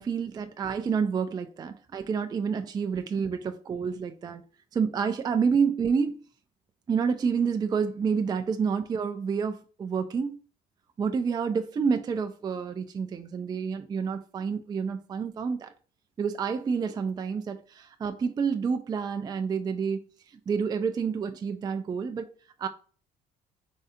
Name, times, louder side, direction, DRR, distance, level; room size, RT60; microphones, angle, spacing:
voice 1, 0.0-4.4 4.7-6.2 6.9-10.4 11.0-15.7 16.2-20.1 20.5-22.3 22.6-22.7, right 6 dB, 25° right, 0.3 m, -28 dB
3.7 x 3.2 x 2.7 m
cardioid pair, 110°, 17 cm